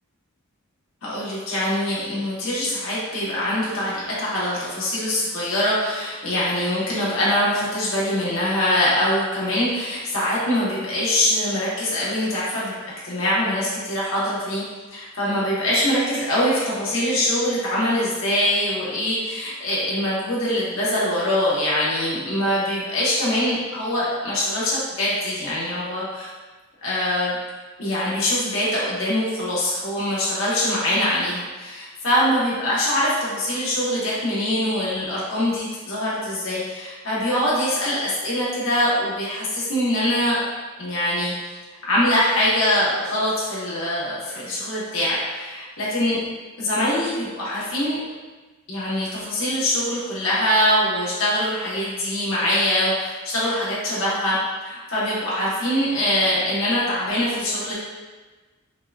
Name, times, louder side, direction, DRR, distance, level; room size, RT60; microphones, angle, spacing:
voice 1, 1.0-12.7 13.0-14.6 14.9-26.3 26.8-27.4 27.8-40.4 40.8-41.3 41.8-46.2 46.6-48.0 48.7-54.4 54.6-57.7, left 1 dB, 65° left, -7 dB, 1.3 m, -23 dB
5.6 x 2.5 x 2.4 m, 1.3 s
head